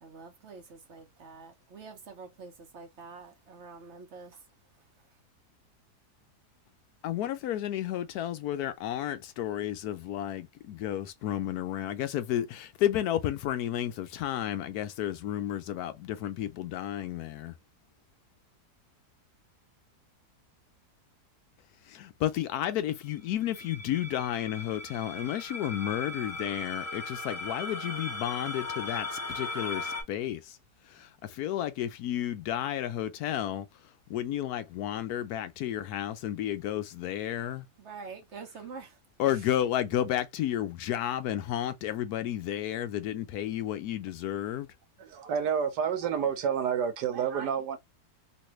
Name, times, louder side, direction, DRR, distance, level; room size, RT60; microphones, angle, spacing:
voice 1, 0.0-4.4 37.8-39.0, right 4 dB, 50° right, 1.0 m, -46 dB
voice 2, 7.0-17.5 21.9-30.6 30.9-33.7 34.1-37.7 39.2-44.7, left 11 dB, 75° left, 1.0 m, -32 dB
sound 1, 23.4-30.0, left 2 dB, 10° left, 1.0 m, -38 dB
voice 3, 45.0-47.8, right 7 dB, 85° right, 1.4 m, -29 dB
3.1 x 2.6 x 2.9 m
omnidirectional pair, 1.8 m